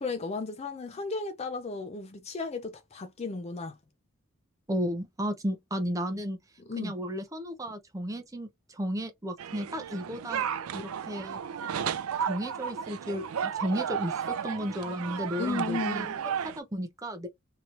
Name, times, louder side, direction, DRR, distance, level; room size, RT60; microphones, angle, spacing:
voice 1, 0.0-3.8 6.7-6.9 15.4-16.1, left 3 dB, 30° left, 0.4 m, -34 dB
voice 2, 4.7-6.4 6.8-10.4 10.7-11.4 12.2-17.3, equal, 15° right, 0.7 m, -34 dB
sound 1, 9.4-16.6, right 8 dB, 90° right, 0.4 m, -33 dB
3.0 x 2.9 x 2.5 m
head